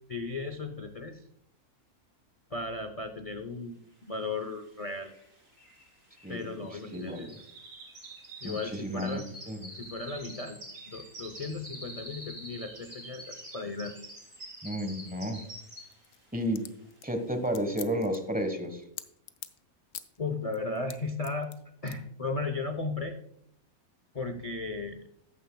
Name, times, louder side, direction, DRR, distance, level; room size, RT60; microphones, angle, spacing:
voice 1, 0.1-1.2 2.5-5.1 6.3-7.3 8.4-9.3 9.7-13.9 20.2-21.5 21.8-23.2 24.1-25.1, left 3 dB, 45° left, 7 dB, 0.4 m, -36 dB
sound 1, 4.4-4.5 4.7-16.1 16.5-16.9 17.3-17.4, right 1 dB, 50° right, 3.6 m, -47 dB
voice 2, 6.9-7.3 8.4-9.2 9.5-9.7 14.6-15.4 16.3-16.6 17.0-18.8, equal, 5° right, 6 dB, 0.9 m, -32 dB
sound 2, 15.8-19.6 19.9-20.2 20.5-21.6 21.9-22.0, left 12 dB, 80° left, 1.1 m, -44 dB
14.0 x 9.4 x 2.2 m, 0.70 s
omnidirectional pair, 1.6 m